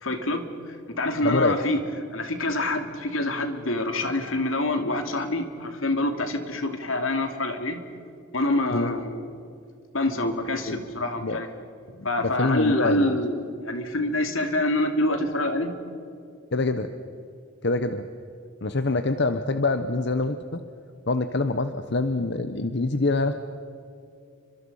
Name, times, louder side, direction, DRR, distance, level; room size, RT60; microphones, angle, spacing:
voice 1, 0.0-1.8 2.1-7.8 8.3-9.4 9.9-11.6 12.0-15.7, left 1 dB, 80° left, 6 dB, 2.8 m, -26 dB
voice 2, 1.2-1.6 8.7-8.9 10.7-10.8 11.2-11.4 12.0-13.1 16.5-16.9 17.6-18.0 18.6-20.6 21.1-23.3, left 3 dB, 55° left, 9 dB, 1.0 m, -25 dB
29.5 x 25.0 x 5.6 m, 2.5 s
head